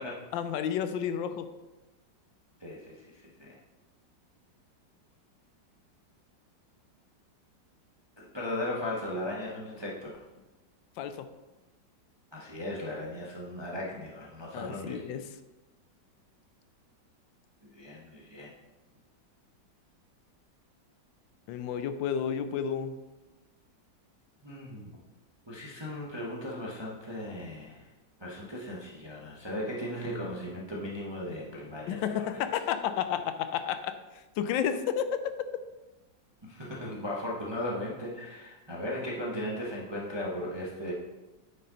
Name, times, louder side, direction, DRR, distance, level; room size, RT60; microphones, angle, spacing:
voice 1, 0.3-1.5 11.0-11.3 14.5-15.2 21.5-22.9 31.9-35.5, left 8 dB, 85° left, 10 dB, 1.3 m, -31 dB
voice 2, 2.6-3.6 8.2-10.2 12.3-15.0 17.7-18.5 24.4-24.9 25.5-27.8 28.2-32.4 36.4-40.9, left 1 dB, 20° right, -4 dB, 0.9 m, -37 dB
9.3 x 5.6 x 3.9 m, 1.1 s
omnidirectional pair, 2.0 m